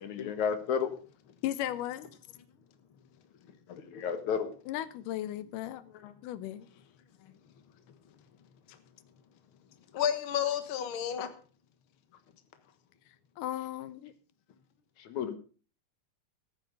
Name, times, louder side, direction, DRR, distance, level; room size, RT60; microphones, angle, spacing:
voice 1, 0.0-0.9 3.8-4.5 15.0-15.3, left 7 dB, 70° left, 2.7 m, -32 dB
voice 2, 1.4-2.1 4.7-5.8 6.2-6.7 13.4-14.1, left 13 dB, 90° left, 2.4 m, -36 dB
voice 3, 3.7-4.0 6.0-6.1 9.9-11.3, left 9 dB, 50° left, 1.9 m, -32 dB
14.0 x 9.8 x 5.3 m
omnidirectional pair, 3.6 m